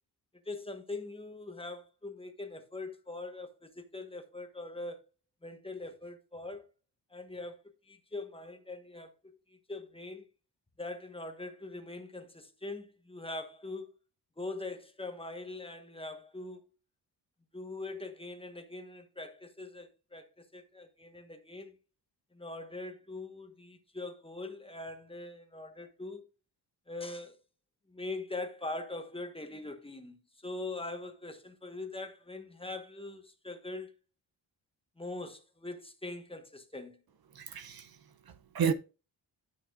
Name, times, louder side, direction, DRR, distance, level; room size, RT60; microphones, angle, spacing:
voice 1, 0.4-5.0 5.4-6.6 7.1-7.6 7.9-10.2 10.8-13.9 14.4-16.6 17.5-21.7 22.3-26.2 26.9-27.4 27.9-30.2 30.4-33.9 35.0-37.0, left 2 dB, 10° left, 1.3 m, -42 dB
voice 2, 37.3-38.0 38.3-38.7, right 7 dB, 55° right, 0.7 m, -32 dB
12.0 x 6.0 x 2.5 m
cardioid pair, 85°, 44 cm